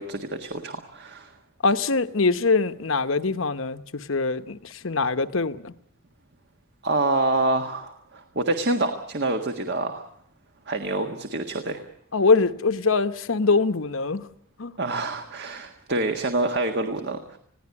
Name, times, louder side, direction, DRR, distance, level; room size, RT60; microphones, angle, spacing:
voice 1, 0.0-1.3 6.8-10.1 10.7-11.8 14.8-17.4, right 2 dB, 55° right, 1.6 m, -27 dB
voice 2, 1.6-5.7 12.1-14.3 14.6-14.8, left 4 dB, 65° left, 1.0 m, -23 dB
21.0 x 16.5 x 9.6 m
head